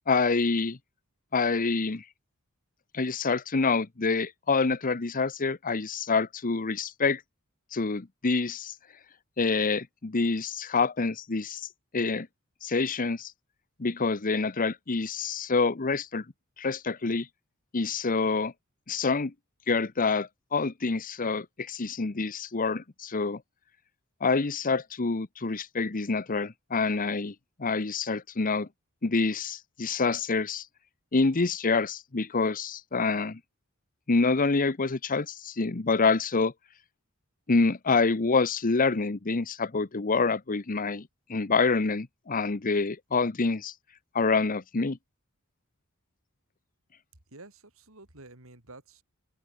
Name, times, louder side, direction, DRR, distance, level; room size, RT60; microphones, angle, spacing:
voice 1, 0.1-0.8 1.3-2.0 2.9-7.2 7.7-8.7 9.4-12.3 12.6-13.3 13.8-16.2 16.6-17.3 17.7-18.5 18.9-19.3 19.7-23.4 24.2-28.7 29.0-30.7 31.1-33.4 34.1-36.5 37.5-43.7 44.1-45.0, left 4 dB, 40° left, 0.9 m, -27 dB
voice 2, 47.3-49.0, right 2 dB, 65° right, 4.8 m, -50 dB
open air
head